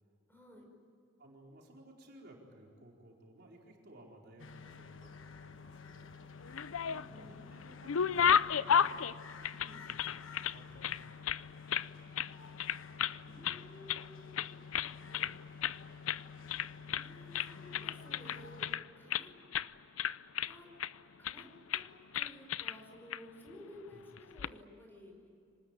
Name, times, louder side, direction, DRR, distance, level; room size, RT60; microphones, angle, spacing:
voice 1, 0.3-0.7 6.8-7.5 9.4-9.8 13.2-14.4 16.8-18.7 18.9-19.3 20.4-20.7 21.2-21.5 21.7-21.8 22.1-25.3, left 1 dB, 10° left, 1 dB, 5.1 m, -54 dB
voice 2, 1.2-6.2 7.0-8.8 9.6-10.0 10.3-11.3 23.9-24.0, right 1 dB, 55° right, -1 dB, 4.7 m, -57 dB
sound 1, 4.4-18.8, left 5 dB, 65° left, 1.3 m, -51 dB
sound 2, 6.4-7.3 7.6-10.6 10.8-11.9 12.2-12.3 12.6-13.2 13.4-14.1 14.4-15.3 15.6-15.8 16.1-16.2 16.5-17.1 17.3-19.3 19.5-19.7 20.0-20.9 21.2-21.4 21.7-21.9 22.1-22.8 23.1-23.2 24.2-24.5, left 8 dB, 90° left, 0.6 m, -32 dB
26.0 x 19.5 x 9.2 m, 2.6 s
head